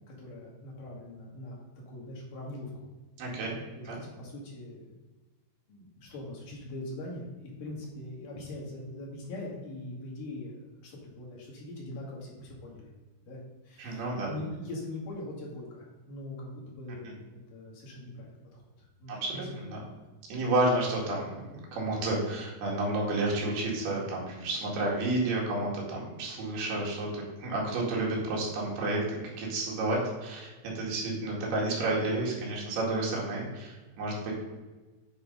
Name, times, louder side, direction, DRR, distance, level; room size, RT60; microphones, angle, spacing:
voice 1, 0.1-1.6 1.9-2.9 3.3-3.4 3.7-4.9 5.7-12.9 13.2-19.5, left 1 dB, 60° left, -3 dB, 3.5 m, -42 dB
voice 2, 3.2-3.6 3.9-4.0 13.8-14.3 19.1-19.8 20.3-27.1 27.4-34.3, right 2 dB, 85° right, -3 dB, 4.2 m, -31 dB
9.5 x 4.5 x 5.3 m, 1.2 s
omnidirectional pair, 4.4 m